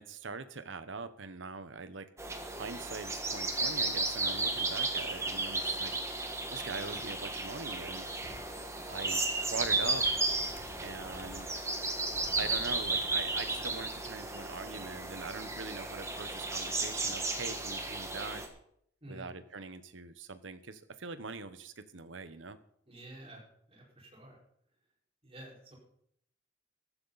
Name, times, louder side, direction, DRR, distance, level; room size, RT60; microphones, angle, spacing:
voice 1, 0.0-2.1 2.6-5.9 6.5-8.1 8.9-9.2 9.5-11.6 12.4-18.4 19.1-22.6, right 4 dB, 90° right, 12 dB, 0.9 m, -42 dB
sound 1, 2.2-18.5, right 3 dB, 15° right, 1.6 m, -34 dB
sound 2, 6.9-7.0 8.2-8.4 9.6-11.4 12.1-13.9, left 1 dB, 40° left, 1.4 m, -51 dB
voice 2, 19.0-19.3 22.9-23.4 23.7-24.4 25.2-25.8, right 1 dB, 30° right, -3 dB, 4.8 m, -50 dB
14.0 x 13.5 x 4.0 m, 0.71 s
head